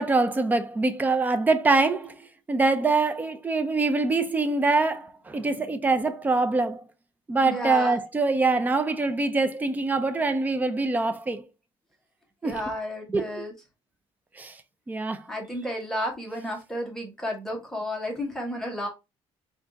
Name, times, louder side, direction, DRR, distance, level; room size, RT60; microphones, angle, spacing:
voice 1, 0.0-6.8 7.3-11.4 12.4-12.6 13.1-13.4 14.4-14.6 14.9-15.3, right 3 dB, 15° right, 0.4 m, -24 dB
voice 2, 7.4-8.0 12.4-13.5 15.3-18.9, equal, 5° left, 1.1 m, -32 dB
3.4 x 2.5 x 3.8 m
cardioid pair, 140°, 11 cm